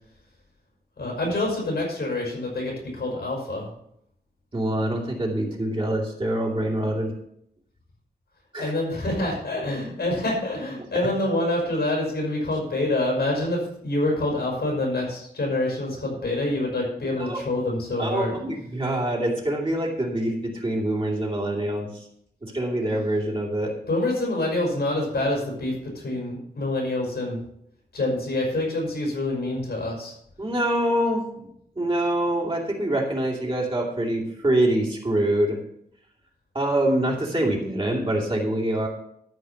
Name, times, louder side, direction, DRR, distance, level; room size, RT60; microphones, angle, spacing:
voice 1, 1.0-3.7 8.6-18.4 23.9-27.4 27.9-30.1, left 2 dB, 85° left, -2 dB, 5.3 m, -26 dB
voice 2, 4.5-7.1 8.5-8.7 17.2-17.4 18.0-22.0 22.4-23.7 30.4-31.2 31.8-35.6 36.5-38.9, right 1 dB, 30° right, -2 dB, 2.7 m, -25 dB
12.5 x 5.0 x 6.9 m, 0.73 s
wide cardioid pair, 115°, 17 cm